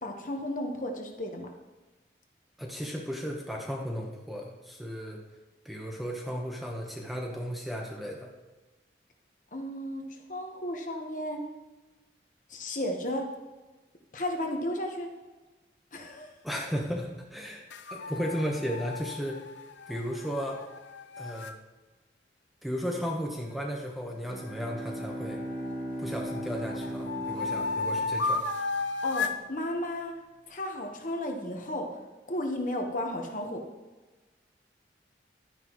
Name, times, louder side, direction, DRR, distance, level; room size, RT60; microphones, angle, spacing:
voice 1, 0.0-1.5 9.5-11.4 12.5-13.3 14.1-15.1 15.9-16.3 29.0-30.1 30.5-31.9 32.3-33.6, left 1 dB, 45° left, 3 dB, 1.2 m, -33 dB
voice 2, 2.6-5.2 5.6-8.3 16.4-17.6 17.9-19.4 19.9-20.6 21.2-21.5 22.6-25.4 26.0-28.4, equal, ahead, -1 dB, 1.1 m, -35 dB
sound 1, 17.7-21.6 24.5-25.7 26.2-29.4, left 3 dB, 85° left, 0.6 m, -34 dB
Bowed string instrument, 24.1-28.8, right 1 dB, 25° right, 3.1 m, -38 dB
11.5 x 9.7 x 3.1 m, 1.2 s
head